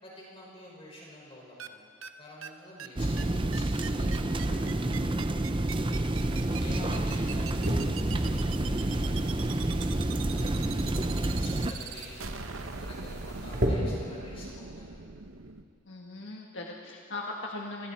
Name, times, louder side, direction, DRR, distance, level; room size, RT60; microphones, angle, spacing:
voice 1, 0.0-1.8 2.2-9.5 10.1-15.2, left 1 dB, 30° left, -4 dB, 5.8 m, -49 dB
sound 1, 1.6-1.7 2.0-2.1 2.4-2.5 2.8-2.9 3.2-3.3 3.5-15.6, right 6 dB, 80° right, 1.0 m, -41 dB
sound 2, 3.0-11.7, right 1 dB, 25° right, 0.7 m, -29 dB
sound 3, 6.1-13.7, equal, 55° right, 3.5 m, -38 dB
voice 2, 6.7-7.2 15.8-17.9, left 2 dB, 65° left, 0 dB, 1.5 m, -39 dB
30.0 x 21.0 x 4.4 m, 2.2 s
head